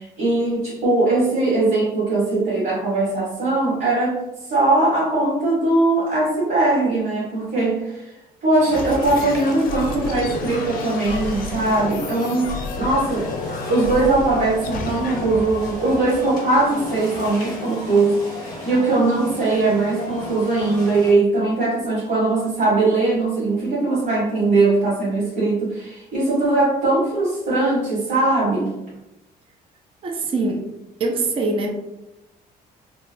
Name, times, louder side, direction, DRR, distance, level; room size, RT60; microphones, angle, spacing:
voice 1, 0.0-8.0 8.4-13.3 13.7-28.7, right 2 dB, 60° right, -7 dB, 1.4 m, -20 dB
sound 1, 8.5-21.1, left 1 dB, 25° left, 0.9 m, -35 dB
sound 2, 8.7-16.9, left 4 dB, 55° left, 0.4 m, -31 dB
voice 2, 30.0-30.7 31.0-31.7, right 3 dB, 30° right, 2 dB, 0.5 m, -23 dB
2.9 x 2.3 x 2.5 m, 0.92 s
cardioid pair, 110°, 17 cm